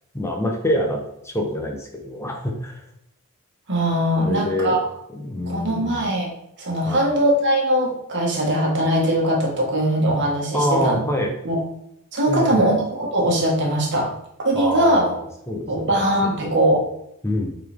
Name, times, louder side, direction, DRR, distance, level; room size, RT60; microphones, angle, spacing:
voice 1, 0.1-2.8 4.2-4.8 5.1-6.0 6.9-7.1 10.5-11.4 12.3-12.7 14.5-16.0 16.4-16.5 17.2-17.5, left 1 dB, 10° left, 1 dB, 0.8 m, -25 dB
voice 2, 3.7-4.8 5.4-6.3 6.6-11.0 11.4-11.6 12.1-14.1 14.4-15.1 15.7-16.8, right 1 dB, 55° right, -1 dB, 1.6 m, -21 dB
7.9 x 4.1 x 3.5 m, 0.77 s
head